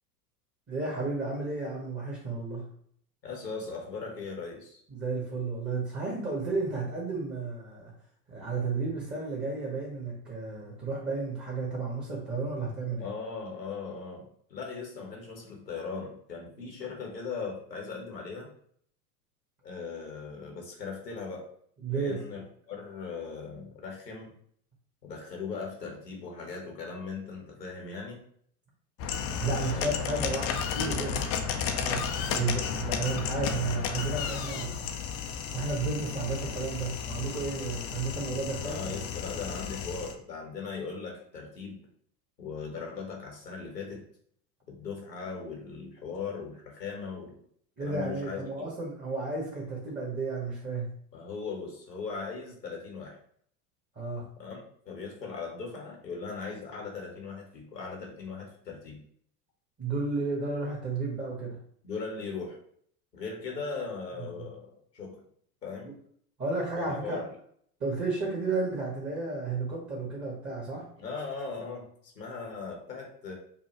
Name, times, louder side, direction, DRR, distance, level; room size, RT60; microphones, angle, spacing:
voice 1, 0.7-2.6 4.9-7.9 8.3-13.1 21.8-22.2 29.4-31.2 31.7-34.8 35.5-39.0 47.8-50.9 53.9-54.2 59.8-61.6 64.2-64.4 66.4-67.2 67.8-70.8, right 3 dB, 20° right, -3 dB, 1.3 m, -32 dB
voice 2, 3.2-4.8 13.0-14.2 14.5-18.5 19.6-21.5 21.9-24.3 25.0-28.2 29.5-30.1 38.6-41.8 42.4-44.0 44.7-47.4 47.8-48.7 51.1-53.2 54.4-54.6 54.9-59.0 61.8-62.6 63.1-64.7 64.9-65.2 65.6-65.9 66.8-67.3 71.0-71.9 72.1-73.3, left 4 dB, 90° left, 0 dB, 1.2 m, -39 dB
sound 1, 29.0-40.1, left 7 dB, 30° left, 0.4 m, -33 dB
5.5 x 2.3 x 3.0 m, 0.63 s
figure-of-eight pair, 80°, 48 cm